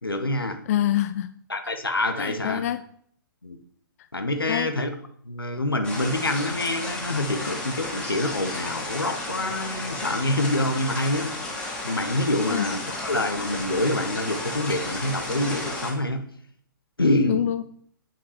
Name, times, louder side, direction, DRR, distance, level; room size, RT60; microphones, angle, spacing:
voice 1, 0.0-0.6 1.5-2.7 3.4-3.6 4.1-4.9 5.2-11.3 11.8-16.2 17.0-17.5, left 1 dB, 90° left, 6 dB, 1.0 m, -26 dB
voice 2, 0.7-1.3 2.2-2.8 4.5-4.7 12.5-12.7 17.3-17.6, left 12 dB, 45° left, 12 dB, 0.4 m, -25 dB
sound 1, 5.8-15.9, left 2 dB, 10° left, 2.4 m, -33 dB
8.9 x 5.5 x 4.9 m, 0.63 s
figure-of-eight pair, 125°, 12 cm